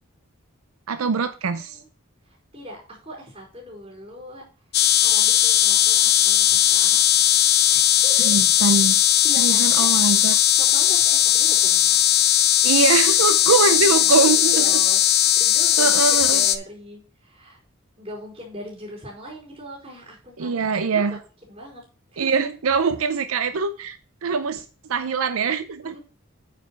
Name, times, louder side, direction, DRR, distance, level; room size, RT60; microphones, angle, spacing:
voice 1, 0.9-1.8 8.2-9.0 9.4-10.4 12.6-14.7 15.8-16.4 20.4-21.2 22.2-26.0, right 5 dB, 85° right, 0.6 m, -23 dB
voice 2, 1.4-1.9 2.2-4.4 4.7-7.0 7.7-8.3 9.0-9.9 10.6-12.0 13.9-17.6 18.0-21.2 21.5-21.8 22.1-22.3 25.8-26.0, equal, 25° right, 4.6 m, -40 dB
sound 1, 4.7-16.6, left 11 dB, 50° left, 0.6 m, -18 dB
9.1 x 5.1 x 4.5 m
head